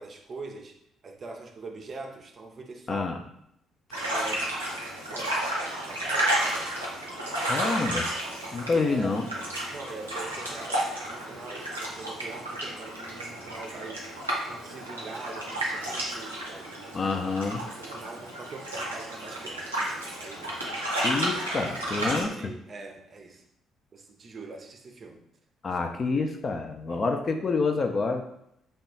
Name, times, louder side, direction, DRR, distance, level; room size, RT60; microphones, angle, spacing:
voice 1, 0.0-3.4 4.1-4.5 5.0-5.6 5.9-6.8 8.7-9.1 9.7-14.1 14.4-17.0 17.8-21.1 21.5-23.4 23.9-25.2 25.7-25.8 26.9-27.2, right 3 dB, 40° right, 4 dB, 0.5 m, -43 dB
sound 1, 3.9-22.2, right 1 dB, 90° right, 0.6 m, -32 dB
voice 2, 7.5-8.1 8.5-9.3 16.9-17.6 21.0-22.3 25.6-28.2, left 4 dB, 40° left, 5 dB, 0.4 m, -27 dB
3.4 x 2.3 x 4.0 m, 0.76 s
figure-of-eight pair, 45°, 0 cm